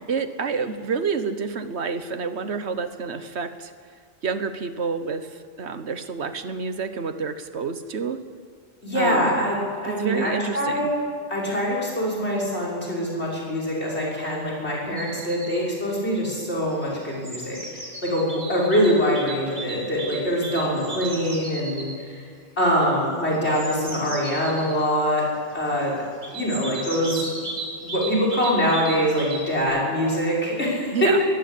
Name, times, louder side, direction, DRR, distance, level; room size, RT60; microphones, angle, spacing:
voice 1, 0.1-3.7 4.2-8.2 8.9-9.5 9.8-10.9 30.9-31.2, right 5 dB, 90° right, 11 dB, 1.5 m, -29 dB
voice 2, 8.8-11.0 11.3-22.2 22.6-25.3 25.5-26.0 26.3-27.2 27.8-31.1, equal, 90° left, -3 dB, 6.7 m, -24 dB
sound 1, 15.0-15.6 16.7-22.0 23.3-24.9 26.2-29.6, right 2 dB, 45° right, 3.4 m, -36 dB
22.5 x 15.0 x 8.5 m, 2.1 s
omnidirectional pair, 1.1 m